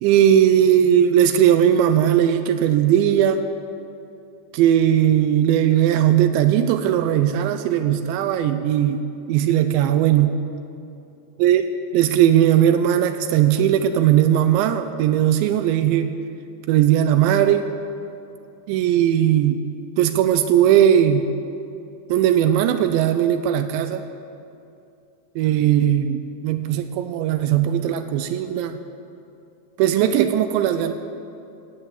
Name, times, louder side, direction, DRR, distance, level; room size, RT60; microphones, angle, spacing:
voice 1, 0.0-3.4 4.5-9.0 9.3-10.4 11.4-16.1 16.7-17.7 18.7-19.6 20.0-21.3 22.1-24.0 25.4-28.8 29.8-30.9, right 10 dB, 85° right, 8 dB, 2.9 m, -18 dB
15.5 x 8.7 x 8.0 m, 2.6 s
omnidirectional pair, 5.2 m